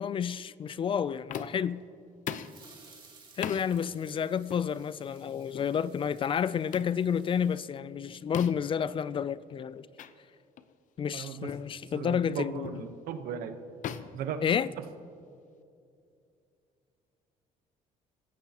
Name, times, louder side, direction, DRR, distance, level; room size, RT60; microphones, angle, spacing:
voice 1, 0.0-1.8 3.4-9.9 11.0-12.8 14.4-14.7, left 8 dB, 35° left, 0.4 m, -30 dB
sound 1, 1.3-1.7 2.3-2.6 3.4-3.7 4.5-4.7 5.5-5.7 6.7-7.0 8.3-8.7 10.0-10.1 10.6-10.7 11.5-11.7 12.6-12.9 13.8-15.1, left 9 dB, 60° left, 0.7 m, -39 dB
sound 2, 2.3-7.7, right 4 dB, 35° right, 3.0 m, -58 dB
voice 2, 11.1-11.5 11.9-13.6 14.1-14.4 14.8-14.9, right 8 dB, 85° right, 1.1 m, -36 dB
26.0 x 15.5 x 2.9 m
cardioid pair, 115°, 15 cm